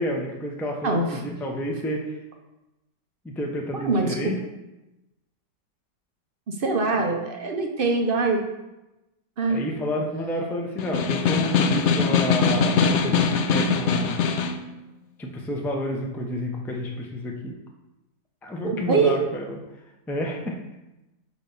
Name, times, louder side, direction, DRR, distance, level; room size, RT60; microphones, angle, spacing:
voice 1, 0.0-2.1 3.2-4.4 7.0-7.1 9.5-14.2 15.2-17.6 18.4-19.6 20.1-20.5, equal, 5° left, 1 dB, 0.3 m, -30 dB
voice 2, 0.8-1.2 3.7-4.3 6.5-8.4 9.4-9.6 18.6-19.1, right 3 dB, 55° right, 3 dB, 0.6 m, -23 dB
Snare drum, 10.8-14.6, left 5 dB, 80° left, 0.6 m, -22 dB
6.0 x 4.5 x 5.4 m, 0.98 s
omnidirectional pair, 1.8 m